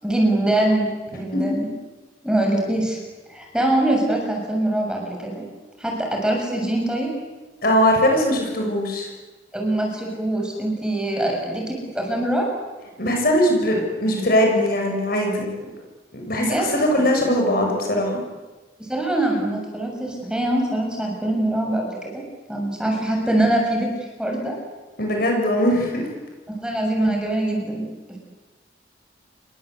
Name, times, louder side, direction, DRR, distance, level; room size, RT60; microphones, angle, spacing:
voice 1, 0.0-1.7 2.2-3.0 3.3-5.4 5.8-7.2 9.5-12.5 16.4-16.7 18.8-22.2 22.5-24.6 26.5-28.2, right 1 dB, 5° right, 0 dB, 7.1 m, -23 dB
voice 2, 7.6-9.1 13.0-15.5 16.1-18.2 25.0-26.1, equal, 55° left, 1 dB, 7.1 m, -20 dB
29.0 x 23.5 x 8.3 m, 1.3 s
head